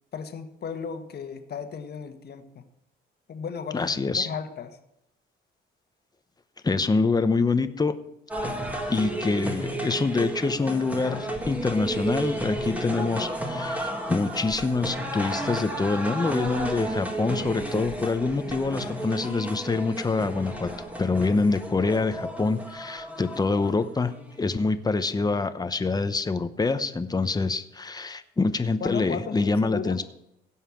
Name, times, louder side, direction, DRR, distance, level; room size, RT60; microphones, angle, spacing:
voice 1, 0.1-2.6 3.3-4.7 28.8-30.0, left 6 dB, 55° left, 7 dB, 1.4 m, -35 dB
voice 2, 3.7-4.3 6.6-7.9 8.9-20.7 21.0-24.1 24.4-30.0, left 3 dB, 20° left, 11 dB, 0.9 m, -26 dB
sound 1, 8.3-24.4, right 1 dB, 5° right, 2.0 m, -32 dB
16.5 x 5.7 x 7.1 m, 0.83 s
cardioid pair, 90°, 20 cm